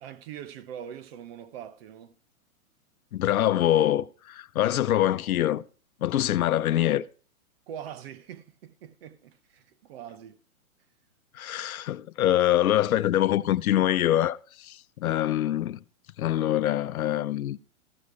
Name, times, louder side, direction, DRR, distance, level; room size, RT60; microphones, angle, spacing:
voice 1, 0.0-2.1 7.7-10.4, right 9 dB, 45° right, 1.0 m, -42 dB
voice 2, 3.1-5.6 6.0-7.0 11.3-15.8 16.2-17.6, left 12 dB, 75° left, 0.7 m, -24 dB
14.5 x 6.5 x 4.7 m
hypercardioid pair, 145°, 43 cm